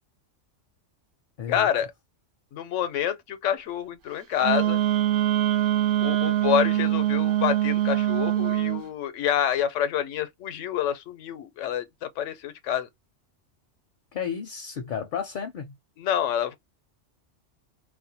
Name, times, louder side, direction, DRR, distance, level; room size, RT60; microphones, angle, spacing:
voice 1, 1.5-1.9 2.5-4.8 6.0-12.9 16.0-16.6, left 9 dB, 85° left, 1.0 m, -27 dB
Wind instrument woodwind instrument, 4.4-8.8, right 12 dB, 85° right, 0.9 m, -23 dB
voice 2, 14.1-15.7, left 7 dB, 60° left, 0.6 m, -32 dB
2.4 x 2.1 x 2.7 m
omnidirectional pair, 1.2 m